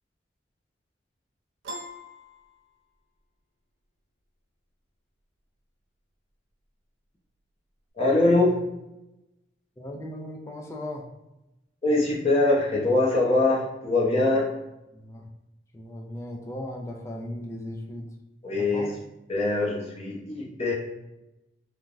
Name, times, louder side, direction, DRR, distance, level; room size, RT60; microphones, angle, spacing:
Piano, 1.6-3.2, equal, 80° right, 0.5 m, -41 dB
voice 1, 8.0-8.6 11.8-14.5 18.4-18.8 19.3-20.7, left 2 dB, 35° left, -4 dB, 0.7 m, -23 dB
voice 2, 9.8-11.0 14.9-15.3 15.7-18.1 18.5-18.9, left 1 dB, 15° left, 1 dB, 0.3 m, -37 dB
3.2 x 2.1 x 2.5 m, 0.93 s
head